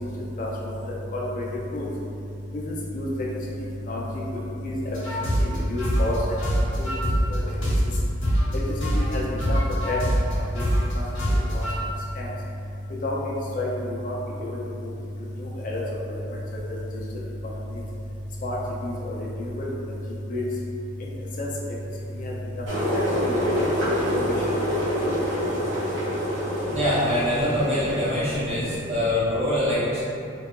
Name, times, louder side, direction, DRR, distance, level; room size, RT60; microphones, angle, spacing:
voice 1, 0.4-0.7 1.1-1.4 1.7-1.9 2.5-3.1 3.9-4.2 4.6-5.0 5.4-6.2 6.8-6.9 7.3-7.7 8.9-9.2 9.5-9.6 9.9-10.0 10.5-10.6 11.3-11.7 12.2-12.3 13.0-14.9 15.4-15.8 16.1-16.2 16.9-17.0 17.4-17.5 18.4-18.6 18.8-19.7 20.3-20.4 21.4-21.5 22.1-22.3 22.8-23.7 24.1-24.3, left 1 dB, 45° left, -4 dB, 0.4 m, -30 dB
sound 1, 4.9-8.5 8.8-11.8, equal, 75° left, 0.9 m, -24 dB
sound 2, 22.7-28.8, equal, 70° right, 0.8 m, -26 dB
voice 2, 26.7-30.0, left 1 dB, 30° right, -11 dB, 0.7 m, -24 dB
2.6 x 2.2 x 2.2 m, 2.5 s
head